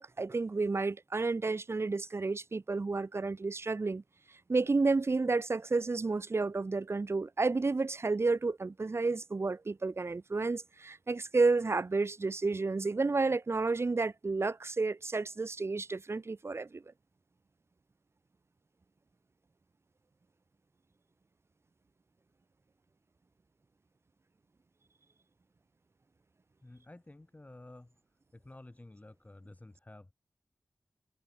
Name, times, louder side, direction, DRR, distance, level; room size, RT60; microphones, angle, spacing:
voice 1, 0.0-4.0 4.5-16.8, right 3 dB, 40° right, 1.0 m, -31 dB
voice 2, 26.6-28.0 28.3-30.1, left 2 dB, 25° left, 5.5 m, -52 dB
wide cardioid pair, 105°, 7 cm